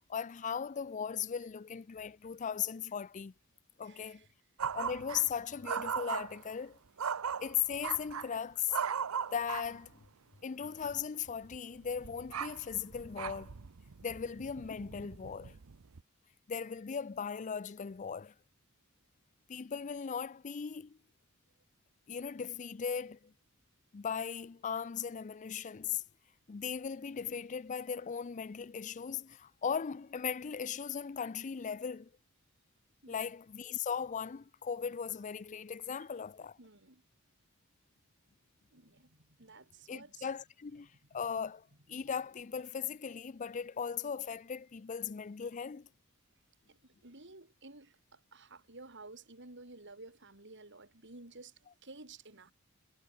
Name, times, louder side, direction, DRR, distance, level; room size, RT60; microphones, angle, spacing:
voice 1, 0.1-3.3 3.8-4.3 4.7-6.8 7.4-8.8 9.3-10.1 10.4-13.5 14.0-15.5 16.5-18.3 19.5-21.0 22.1-23.3 23.9-26.0 26.5-32.1 33.1-36.6 39.9-45.9, left 7 dB, 35° left, 0.4 m, -38 dB
voice 2, 3.8-4.3 33.0-33.2 36.4-37.0 38.7-40.3 46.7-51.5 51.8-52.5, right 3 dB, 60° right, 4.4 m, -53 dB
sound 1, 4.6-5.3 5.6-6.4 7.0-8.3 8.7-9.9 10.8-11.0 11.3-16.0, right 7 dB, 90° right, 0.7 m, -39 dB
head